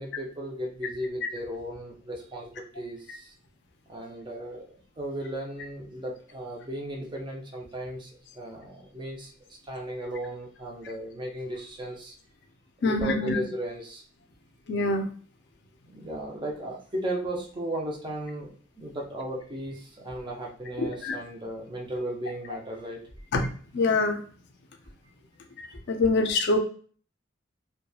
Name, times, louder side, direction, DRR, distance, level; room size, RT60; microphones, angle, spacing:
voice 1, 0.0-3.3 3.9-12.2 12.8-14.0 15.9-23.3, right 1 dB, 25° right, 0 dB, 0.5 m, -36 dB
voice 2, 12.8-13.4 14.7-15.1 20.8-21.2 23.3-23.5 23.7-24.2 25.6-26.6, left 3 dB, 60° left, 5 dB, 0.4 m, -25 dB
2.8 x 2.1 x 2.3 m, 0.44 s
head